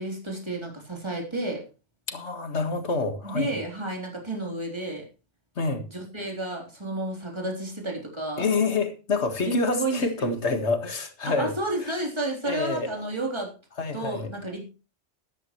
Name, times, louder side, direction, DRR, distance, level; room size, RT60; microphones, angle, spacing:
voice 1, 0.0-1.7 3.2-5.0 5.9-8.5 9.5-10.3 11.2-13.5 13.9-14.6, right 1 dB, 25° right, 3.6 m, -31 dB
voice 2, 2.1-3.5 5.6-5.9 8.4-11.5 12.4-12.9 13.8-14.3, left 3 dB, 70° left, 2.0 m, -27 dB
13.0 x 12.0 x 3.2 m
omnidirectional pair, 1.2 m